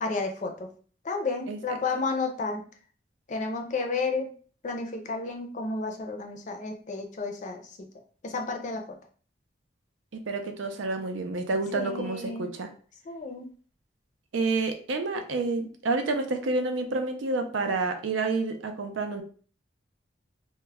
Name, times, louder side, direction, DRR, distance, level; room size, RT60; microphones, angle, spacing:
voice 1, 0.0-0.7 1.0-2.6 3.3-4.3 4.6-7.9 8.2-9.0 11.7-12.5 13.1-13.5, left 3 dB, 40° left, 4 dB, 0.4 m, -32 dB
voice 2, 10.1-12.7 14.3-19.2, right 3 dB, 90° right, 6 dB, 0.5 m, -29 dB
2.2 x 2.0 x 3.3 m, 0.42 s
head